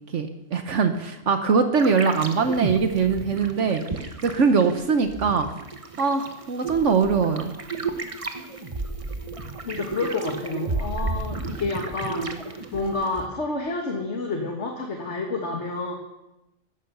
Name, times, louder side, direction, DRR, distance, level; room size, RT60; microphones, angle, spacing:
voice 1, 0.1-3.8 4.2-5.5 6.0-7.5, right 5 dB, 65° right, 8 dB, 1.3 m, -22 dB
sound 1, 1.8-13.3, right 3 dB, 25° right, 1.2 m, -33 dB
voice 2, 9.7-15.9, left 3 dB, 60° left, 2 dB, 2.0 m, -29 dB
15.5 x 12.0 x 6.9 m, 0.94 s
omnidirectional pair, 1.3 m